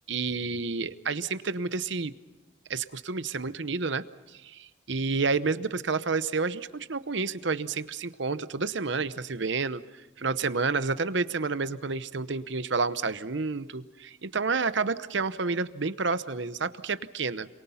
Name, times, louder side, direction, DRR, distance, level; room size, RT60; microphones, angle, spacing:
voice 1, 0.1-2.1 2.7-4.0 4.3-9.8 10.2-17.5, right 4 dB, 65° right, 13 dB, 0.9 m, -30 dB
28.5 x 22.5 x 5.7 m, 1.2 s
head